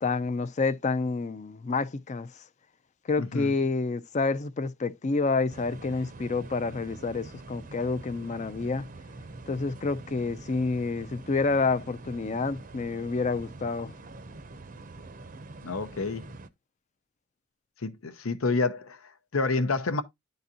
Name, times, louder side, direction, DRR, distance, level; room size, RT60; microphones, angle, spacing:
voice 1, 0.0-2.3 3.1-8.9 9.5-13.9, left 3 dB, 35° left, 0.4 m, -28 dB
voice 2, 3.2-3.5 15.6-16.3 17.8-20.0, left 3 dB, 85° left, 0.8 m, -29 dB
sound 1, 5.5-16.5, right 2 dB, 40° right, 0.6 m, -45 dB
11.0 x 4.0 x 2.8 m
head